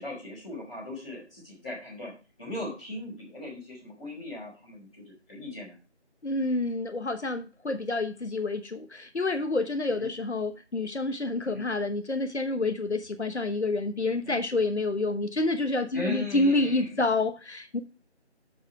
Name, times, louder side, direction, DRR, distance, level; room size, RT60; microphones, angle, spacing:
voice 1, 0.0-2.1 2.4-5.0 5.3-5.8 9.9-10.1 11.4-11.6 14.2-14.4 15.9-17.0, left 1 dB, 5° left, -14 dB, 2.4 m, -38 dB
voice 2, 6.2-17.8, left 2 dB, 70° left, 9 dB, 1.0 m, -28 dB
7.5 x 5.8 x 5.8 m, 0.31 s
figure-of-eight pair, 175°, 35 cm